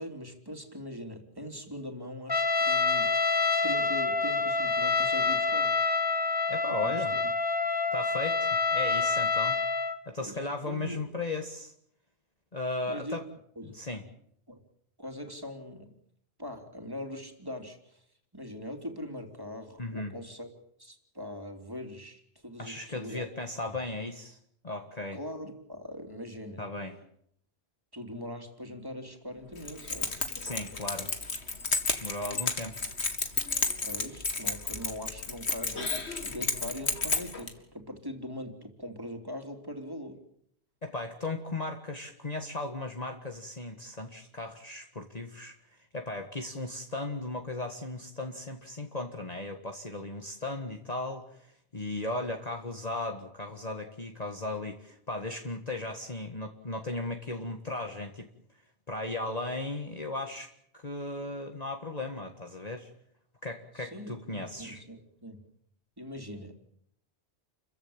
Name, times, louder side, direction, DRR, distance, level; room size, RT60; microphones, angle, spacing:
voice 1, 0.0-3.1 3.6-5.7 6.8-7.0 10.2-11.0 12.9-13.2 13.5-13.8 14.5-14.6 15.0-16.0 16.4-18.0 18.3-20.5 20.8-23.3 23.6-23.8 25.1-26.6 27.9-30.1 33.8-40.2 63.8-65.4 66.0-66.8, equal, 20° right, 5 dB, 3.4 m, -41 dB
Trumpet, 2.3-10.0, left 4 dB, 20° left, 1.5 m, -27 dB
voice 2, 6.5-7.1 7.9-9.6 10.1-11.7 12.5-13.2 13.6-14.0 19.8-20.1 22.6-24.4 24.6-25.2 26.6-27.0 30.4-31.1 32.0-32.9 40.8-58.3 58.9-62.9 63.4-64.8, left 2 dB, 35° left, 4 dB, 1.8 m, -36 dB
Keys jangling, 29.6-37.5, left 3 dB, 70° left, 2.5 m, -32 dB
29.5 x 15.5 x 8.8 m, 0.69 s
omnidirectional pair, 1.1 m